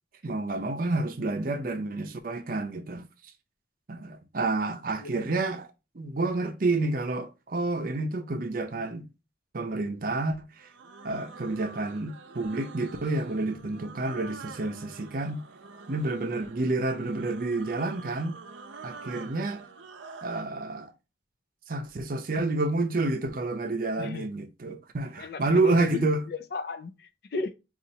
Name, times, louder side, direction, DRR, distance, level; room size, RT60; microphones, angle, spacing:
voice 1, 0.2-3.1 3.9-5.7 5.9-9.1 9.5-10.7 11.0-15.4 15.9-18.4 18.8-19.6 20.2-20.9 21.7-26.2, right 2 dB, 50° right, 0.6 m, -29 dB
sound 1, 10.6-20.5, right 4 dB, 90° right, 0.6 m, -46 dB
voice 2, 24.0-24.3 25.2-27.5, left 5 dB, 55° left, 0.4 m, -35 dB
5.2 x 2.5 x 2.8 m
head